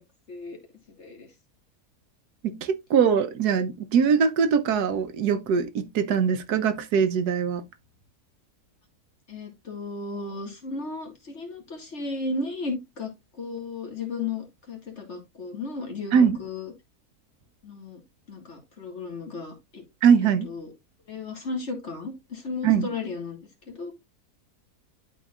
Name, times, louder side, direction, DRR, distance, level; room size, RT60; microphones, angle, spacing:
voice 1, 1.0-1.3 9.3-16.7 17.6-18.0 18.3-19.8 20.4-20.7 21.1-23.4 23.7-23.9, left 3 dB, 45° left, 2.1 m, -34 dB
voice 2, 2.4-7.6 16.1-16.4 20.0-20.5 22.6-22.9, right 7 dB, 90° right, 1.4 m, -22 dB
11.5 x 4.5 x 2.4 m
omnidirectional pair, 1.6 m